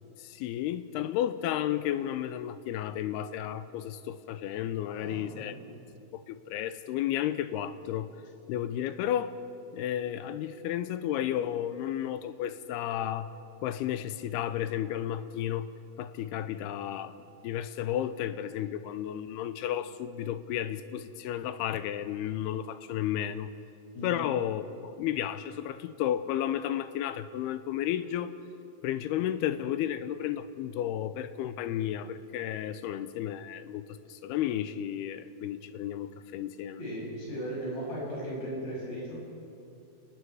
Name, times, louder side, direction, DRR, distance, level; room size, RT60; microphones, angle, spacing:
voice 1, 0.2-5.5 6.1-8.1 8.5-9.3 9.7-13.3 13.6-15.7 16.0-17.2 17.4-23.5 24.0-28.4 28.8-36.8, left 11 dB, 85° left, 12 dB, 2.7 m, -32 dB
voice 2, 4.9-5.6 23.9-24.3 36.8-39.2, equal, 65° left, -5 dB, 8.7 m, -37 dB
28.0 x 19.5 x 4.8 m, 2.6 s
omnidirectional pair, 4.6 m